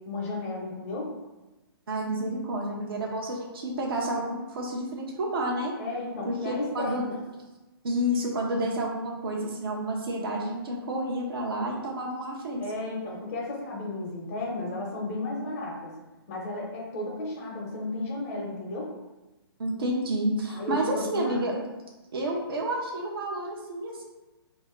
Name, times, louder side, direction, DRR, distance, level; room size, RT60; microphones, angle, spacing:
voice 1, 0.1-1.1 5.8-7.2 12.6-15.9 16.3-18.9 20.5-21.6, left 2 dB, 35° left, -2 dB, 1.0 m, -34 dB
voice 2, 1.9-5.7 6.2-7.0 7.8-12.6 19.6-21.5 22.1-24.0, right 1 dB, 65° right, -2 dB, 0.9 m, -30 dB
2.8 x 2.7 x 4.4 m, 1.1 s
hypercardioid pair, 150°, 13 cm